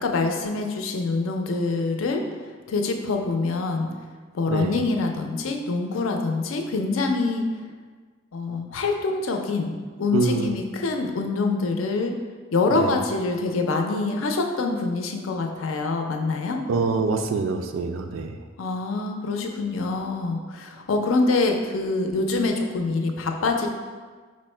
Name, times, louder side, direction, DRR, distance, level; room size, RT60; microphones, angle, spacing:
voice 1, 0.0-2.2 2.7-3.9 4.3-7.5 8.3-9.7 10.0-12.1 12.5-16.6 18.6-23.7, left 3 dB, 80° left, 4 dB, 0.5 m, -25 dB
voice 2, 4.5-4.8 10.1-10.5 12.7-13.0 16.7-18.4, right 4 dB, 75° right, 6 dB, 0.4 m, -25 dB
4.8 x 2.1 x 4.3 m, 1.5 s
head